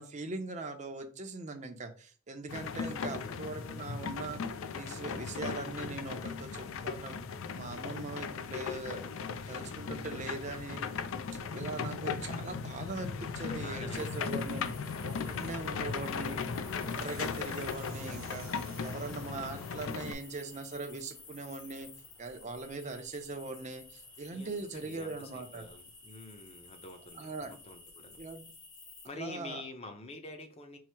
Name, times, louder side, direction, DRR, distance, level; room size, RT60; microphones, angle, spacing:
voice 1, 0.0-4.4 4.7-7.2 7.5-9.0 9.5-10.8 11.5-14.6 15.0-16.4 16.7-18.5 18.8-21.9 22.2-25.7 27.2-27.5 28.2-28.5 29.1-29.6, right 3 dB, 35° right, 6 dB, 0.5 m, -41 dB
sound 1, 2.5-20.1, left 5 dB, 65° left, 0.4 m, -37 dB
voice 2, 2.7-3.3 13.5-14.6 15.0-16.4 24.3-28.2 29.0-30.8, left 2 dB, 30° left, 6 dB, 0.6 m, -48 dB
Fixed-wing aircraft airplane, 12.7-28.1, right 3 dB, 65° right, 0.9 m, -57 dB
sound 2, 13.9-29.1, left 4 dB, 50° left, 1.2 m, -53 dB
4.7 x 2.0 x 4.3 m, 0.39 s
head